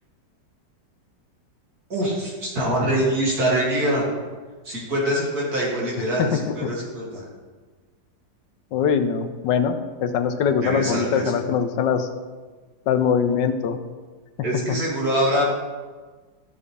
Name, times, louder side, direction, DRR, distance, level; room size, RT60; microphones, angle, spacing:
voice 1, 1.9-4.1 4.6-7.3 10.6-11.4 14.4-15.4, right 1 dB, 60° right, -5 dB, 3.1 m, -24 dB
voice 2, 8.7-12.1 12.9-13.8, left 7 dB, 90° left, 9 dB, 1.4 m, -22 dB
13.5 x 7.0 x 3.4 m, 1.4 s
omnidirectional pair, 1.9 m